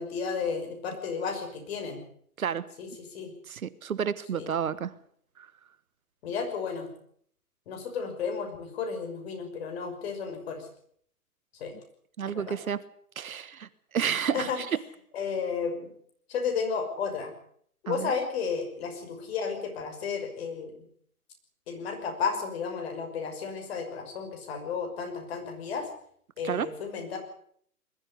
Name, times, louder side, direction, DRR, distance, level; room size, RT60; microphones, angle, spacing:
voice 1, 0.0-2.0 2.8-3.3 4.3-4.5 6.2-6.9 7.7-10.7 11.6-11.7 12.3-12.5 14.3-14.6 15.1-15.9 16.3-17.3 17.8-20.7 21.7-25.9 26.4-27.2, left 5 dB, 40° left, 4 dB, 6.0 m, -33 dB
voice 2, 3.5-4.9 5.4-5.5 12.2-12.8 13.2-14.8 17.9-18.1 26.4-26.7, right 8 dB, 65° right, 16 dB, 1.4 m, -31 dB
21.0 x 14.0 x 9.8 m, 0.64 s
hypercardioid pair, 145°, 46 cm